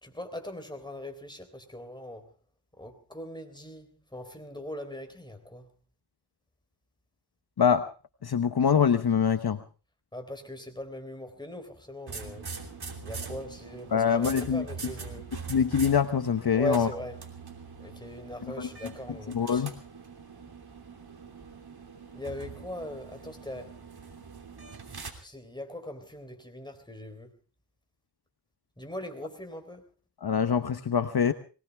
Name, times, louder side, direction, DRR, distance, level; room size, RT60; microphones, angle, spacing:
voice 1, 0.0-2.3 2.8-5.7 10.1-12.5 13.0-15.3 16.5-17.2 17.8-19.7 22.1-23.7 25.2-27.3 28.8-29.8, left 1 dB, 10° left, 3.7 m, -40 dB
voice 2, 8.2-9.6 13.9-14.7 15.5-16.9 18.4-18.9 19.3-19.7 30.2-31.3, left 7 dB, 65° left, 1.1 m, -24 dB
sound 1, 12.1-25.1, right 5 dB, 60° right, 3.2 m, -43 dB
22.0 x 18.5 x 3.5 m
wide cardioid pair, 65°, 42 cm